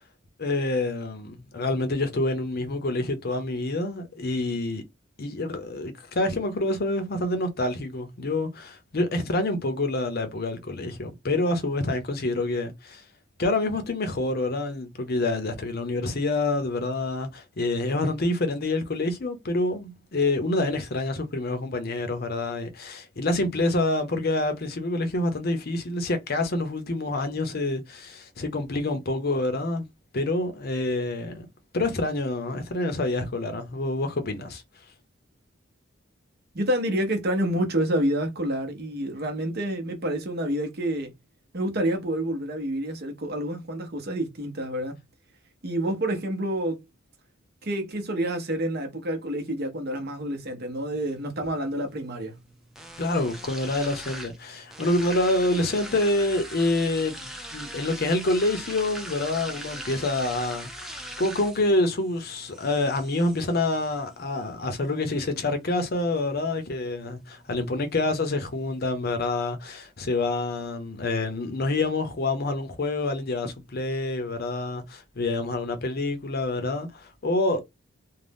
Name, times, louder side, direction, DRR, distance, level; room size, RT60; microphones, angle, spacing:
voice 1, 0.4-4.8 5.2-13.0 13.4-29.9 30.1-31.5 31.7-34.6 53.0-77.6, left 2 dB, 50° left, 0.6 m, -27 dB
voice 2, 36.5-41.1 41.5-45.0 45.6-46.8 47.6-52.4, right 1 dB, 50° right, 0.8 m, -28 dB
sound 1, 50.9-68.9, equal, ahead, 0.4 m, -42 dB
2.6 x 2.1 x 3.4 m
head